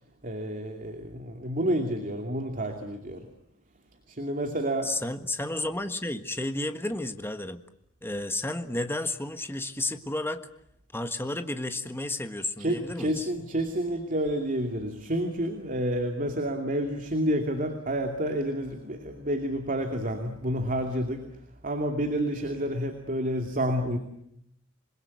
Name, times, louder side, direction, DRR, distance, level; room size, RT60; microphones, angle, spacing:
voice 1, 0.2-3.3 4.1-4.9 12.6-21.3 21.6-24.0, right 1 dB, 40° right, 5 dB, 2.6 m, -29 dB
voice 2, 4.8-7.6 8.0-10.5 10.9-13.3, left 2 dB, 10° left, 8 dB, 1.5 m, -32 dB
28.0 x 21.5 x 9.6 m, 0.77 s
head